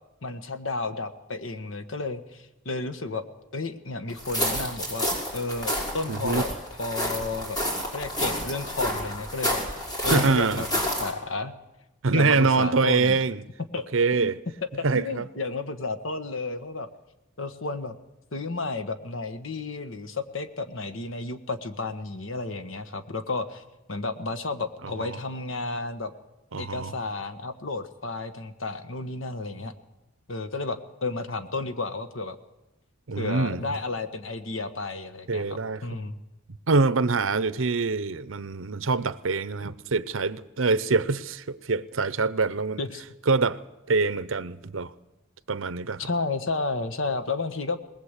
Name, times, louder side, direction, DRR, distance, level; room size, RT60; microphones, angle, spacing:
voice 1, 0.2-3.2 3.5-6.5 6.8-7.6 7.9-10.7 11.0-11.5 12.1-13.2 13.7-13.8 14.2-14.3 14.9-16.9 17.4-17.9 18.3-23.6 23.9-26.1 26.6-29.7 30.3-32.4 33.2-36.1 42.8-43.0 46.0-47.8, left 3 dB, 75° left, 1.4 m, -32 dB
sound 1, 4.2-11.1, equal, 20° left, 5.7 m, -29 dB
voice 2, 6.1-6.4 10.1-10.7 12.0-13.4 13.9-14.4 14.8-15.3 24.8-25.2 26.5-26.9 33.1-33.6 35.3-35.8 36.7-42.8 43.3-43.6 43.9-44.9 45.5-46.1, right 4 dB, 85° right, 0.8 m, -25 dB
20.5 x 19.5 x 8.3 m
head